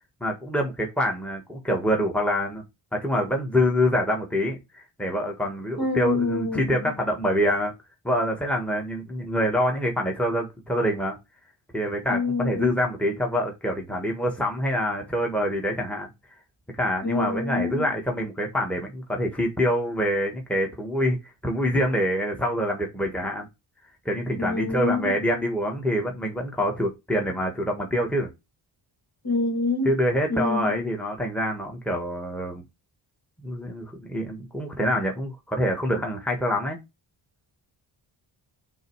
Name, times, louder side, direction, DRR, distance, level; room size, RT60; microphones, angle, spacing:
voice 1, 0.2-2.6 2.9-7.7 8.0-11.2 11.7-16.1 16.8-23.5 24.1-28.3 29.9-32.6 33.4-36.8, equal, ahead, 1.7 m, -26 dB
voice 2, 5.8-6.9 12.1-12.8 17.0-17.8 24.4-25.2 29.2-30.0 30.3-30.9, left 3 dB, 45° left, 2.8 m, -27 dB
6.4 x 3.2 x 4.8 m
cardioid pair, 65°, 49 cm